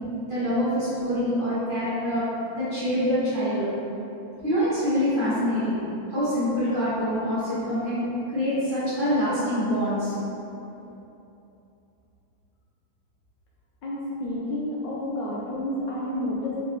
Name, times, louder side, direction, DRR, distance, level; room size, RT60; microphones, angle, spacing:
voice 1, 0.2-2.3 2.5-3.7 4.4-5.8 6.1-10.1, equal, 30° right, -15 dB, 1.2 m, -25 dB
voice 2, 13.8-16.6, left 1 dB, 75° left, -6 dB, 1.2 m, -30 dB
3.5 x 3.2 x 3.0 m, 2.9 s
omnidirectional pair, 2.2 m